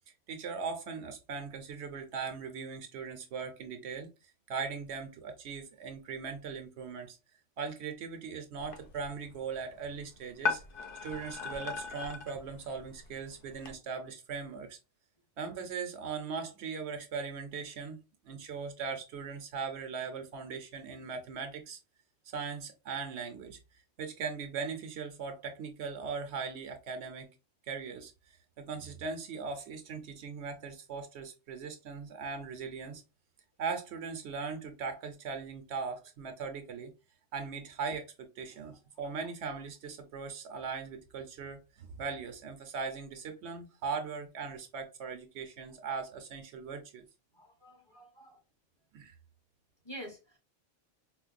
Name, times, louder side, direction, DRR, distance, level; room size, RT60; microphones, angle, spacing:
voice 1, 0.3-4.1 4.5-7.2 7.6-10.6 11.0-14.8 15.4-21.8 22.3-23.6 24.0-27.3 27.7-28.1 28.6-33.0 33.6-36.9 37.3-47.1 48.9-49.1, right 5 dB, 70° right, 0.9 m, -39 dB
sound 1, 8.6-13.7, left 5 dB, 55° left, 0.7 m, -39 dB
voice 2, 47.3-48.4 49.8-50.4, equal, 25° left, 0.8 m, -47 dB
4.4 x 2.1 x 2.4 m
omnidirectional pair, 1.2 m